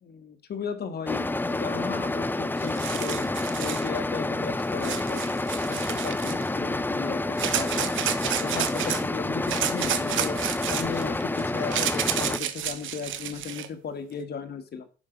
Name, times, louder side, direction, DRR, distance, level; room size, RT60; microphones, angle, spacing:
voice 1, 0.0-3.2 3.6-5.2 5.7-7.9 8.4-10.4 10.7-14.9, left 6 dB, 55° left, 8 dB, 1.6 m, -36 dB
sound 1, 1.1-12.4, left 2 dB, 10° left, 0.5 m, -29 dB
sound 2, 2.3-2.4 2.6-3.9 4.8-6.5 7.4-9.0 9.5-13.7, right 11 dB, 80° right, 1.1 m, -31 dB
10.5 x 5.0 x 5.2 m, 0.36 s
cardioid pair, 90°, 20 cm